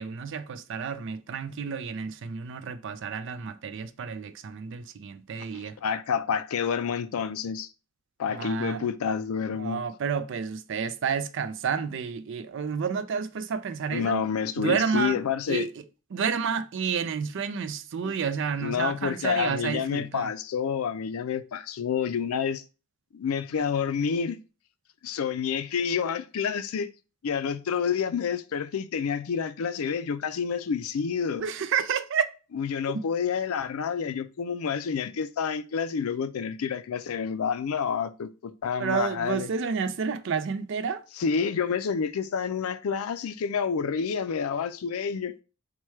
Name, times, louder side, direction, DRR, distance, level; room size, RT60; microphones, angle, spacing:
voice 1, 0.0-5.7 8.3-8.9 9.6-14.2 14.6-15.2 15.5-15.7 16.1-20.3 31.4-32.3 38.8-41.0, right 6 dB, 60° right, 0.4 m, -30 dB
voice 2, 5.5-7.7 8.2-9.8 13.9-15.7 18.0-18.1 18.6-22.6 23.1-24.4 25.0-26.9 27.2-31.5 32.5-39.5 41.2-45.4, left 6 dB, 85° left, 0.4 m, -29 dB
4.6 x 2.2 x 4.4 m
head